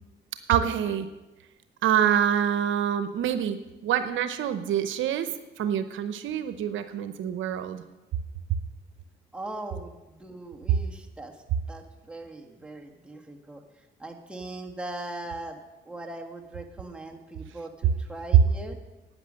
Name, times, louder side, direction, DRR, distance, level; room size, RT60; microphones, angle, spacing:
voice 1, 0.5-1.1 1.8-3.6 3.8-5.3 5.6-7.8, right 9 dB, 80° right, 10 dB, 0.8 m, -26 dB
voice 2, 9.3-11.3 11.7-13.6 14.0-15.6 15.9-18.8, right 2 dB, 5° right, 1 dB, 1.8 m, -40 dB
11.5 x 9.1 x 6.5 m, 1.1 s
cardioid pair, 90°, 20 cm